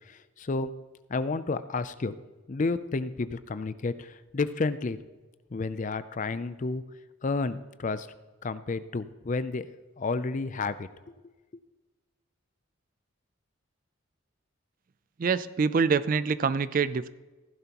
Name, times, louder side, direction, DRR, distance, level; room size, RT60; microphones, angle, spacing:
voice 1, 0.1-0.7 1.1-2.1 2.5-5.0 5.5-6.8 7.2-8.1 8.4-9.7 10.0-10.9, left 3 dB, 35° left, 13 dB, 0.4 m, -31 dB
voice 2, 15.2-17.1, right 5 dB, 40° right, 15 dB, 0.3 m, -25 dB
15.5 x 11.0 x 3.0 m, 1.2 s
head